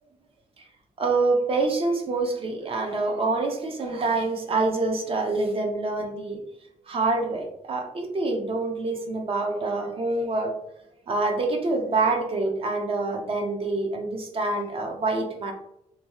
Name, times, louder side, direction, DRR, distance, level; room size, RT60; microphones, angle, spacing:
voice 1, 1.0-6.4 6.9-10.5 11.1-15.5, right 3 dB, 45° right, 3 dB, 0.5 m, -26 dB
2.6 x 2.2 x 2.9 m, 0.78 s
wide cardioid pair, 140°, 14 cm